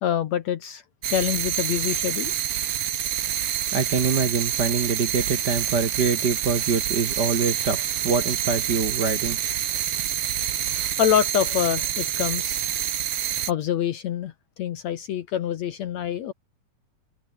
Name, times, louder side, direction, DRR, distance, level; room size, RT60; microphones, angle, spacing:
voice 1, 0.0-2.3 10.7-12.6 13.5-14.3 14.6-16.3, left 10 dB, 65° left, 2.0 m, -26 dB
sound 1, 1.0-13.5, right 11 dB, 60° right, 1.5 m, -27 dB
voice 2, 3.7-9.4, right 5 dB, 40° right, 1.6 m, -25 dB
omnidirectional pair, 4.1 m